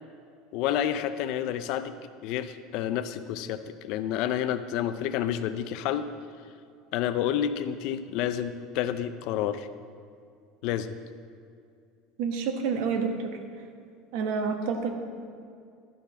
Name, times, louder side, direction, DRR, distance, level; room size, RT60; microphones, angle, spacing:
voice 1, 0.5-1.9 2.2-6.1 6.9-9.7 10.6-11.0, left 10 dB, 50° left, 11 dB, 0.4 m, -29 dB
voice 2, 12.2-13.1 14.1-15.1, right 5 dB, 55° right, 5 dB, 1.0 m, -28 dB
11.5 x 4.7 x 5.8 m, 2.4 s
cardioid pair, 175°, 0 cm